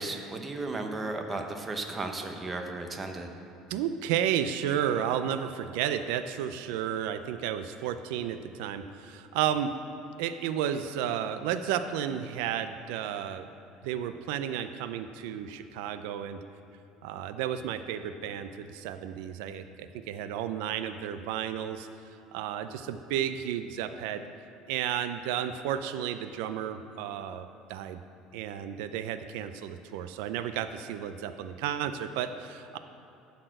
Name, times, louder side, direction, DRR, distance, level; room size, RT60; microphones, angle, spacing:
voice 1, 0.0-3.3, right 2 dB, 15° right, 4 dB, 0.8 m, -35 dB
voice 2, 3.7-9.7 10.2-13.5 13.8-16.4 17.0-24.2 24.7-28.0 28.3-32.8, right 9 dB, 80° right, 10 dB, 0.4 m, -32 dB
12.0 x 4.2 x 7.8 m, 2.7 s
cardioid pair, 155°, 0 cm